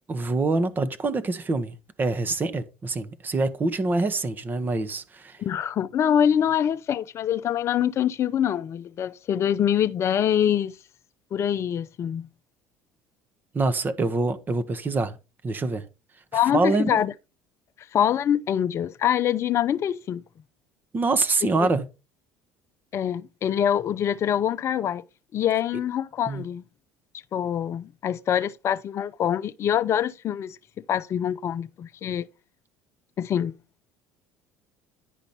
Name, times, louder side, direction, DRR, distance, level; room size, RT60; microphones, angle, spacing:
voice 1, 0.1-5.4 13.5-15.2 15.4-15.8 16.5-17.0 20.9-21.8 26.3-26.5, right 3 dB, 30° right, 1.1 m, -25 dB
voice 2, 5.4-10.7 11.3-12.3 16.3-17.1 17.9-20.2 22.9-25.0 25.3-26.6 27.3-30.6 30.9-32.3 33.2-33.5, left 9 dB, 45° left, 0.6 m, -24 dB
10.0 x 5.2 x 4.2 m
hypercardioid pair, 70°, 6 cm